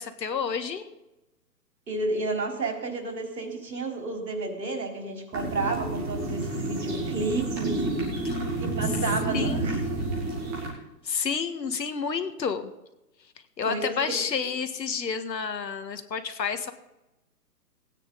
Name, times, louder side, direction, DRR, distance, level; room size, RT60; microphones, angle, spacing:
voice 1, 0.2-0.9 8.2-8.4 9.3-9.7 11.0-12.7 13.6-16.7, left 6 dB, 90° left, 9 dB, 1.7 m, -30 dB
voice 2, 1.9-8.3 8.6-9.8 13.6-13.9, right 2 dB, 85° right, 2 dB, 3.9 m, -31 dB
sound 1, 5.3-10.7, right 2 dB, 5° right, 1.0 m, -30 dB
17.5 x 9.3 x 4.0 m, 0.97 s
hypercardioid pair, 165°, 49 cm